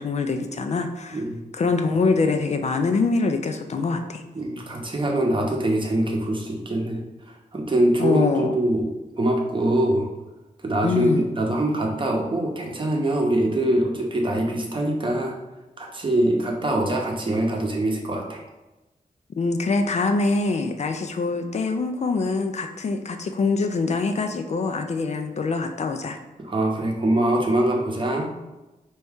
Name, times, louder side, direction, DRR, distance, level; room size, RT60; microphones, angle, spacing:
voice 1, 0.0-1.2 1.5-4.2 8.0-8.5 10.8-11.3 19.4-26.2, left 3 dB, 50° left, 6 dB, 0.4 m, -24 dB
voice 2, 4.3-7.0 7.5-8.9 9.2-10.1 10.6-15.3 15.8-18.4 26.4-28.3, right 1 dB, 35° right, 0 dB, 0.8 m, -23 dB
4.5 x 2.7 x 3.5 m, 1.1 s
wide cardioid pair, 105°, 15 cm